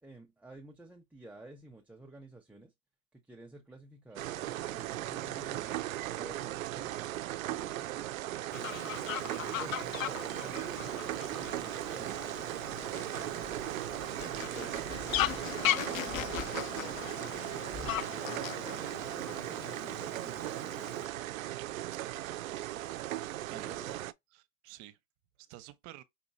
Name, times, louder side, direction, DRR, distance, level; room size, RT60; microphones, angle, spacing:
voice 1, 0.0-2.7 3.1-5.8 6.2-8.1 8.5-8.7 9.3-12.4 14.3-20.9 23.5-24.0, right 2 dB, 5° right, 0.7 m, -52 dB
sound 1, 4.2-24.1, right 14 dB, 85° right, 0.5 m, -38 dB
Fowl, 8.5-21.1, left 12 dB, 85° left, 0.6 m, -38 dB
sound 2, 10.6-18.1, left 3 dB, 30° left, 1.6 m, -51 dB
voice 2, 14.2-14.6 23.5-23.9 24.3-25.0 25.4-26.0, right 15 dB, 55° right, 0.9 m, -51 dB
5.8 x 2.9 x 2.7 m
hypercardioid pair, 105°, 39 cm